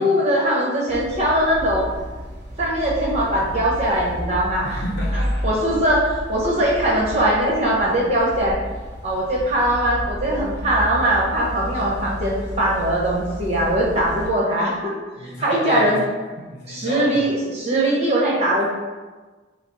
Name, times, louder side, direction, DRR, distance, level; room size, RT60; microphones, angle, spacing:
voice 1, 0.0-1.9 2.6-4.8 5.4-8.6 9.0-14.9 15.2-16.0 16.7-18.7, right 1 dB, 35° right, -4 dB, 1.0 m, -21 dB
sound 1, 0.9-14.3, equal, 15° left, 1.0 m, -31 dB
voice 2, 4.6-5.5 6.6-7.1 15.2-16.1 16.4-17.3, left 1 dB, 55° left, -3 dB, 0.9 m, -31 dB
5.1 x 2.0 x 4.1 m, 1.3 s
head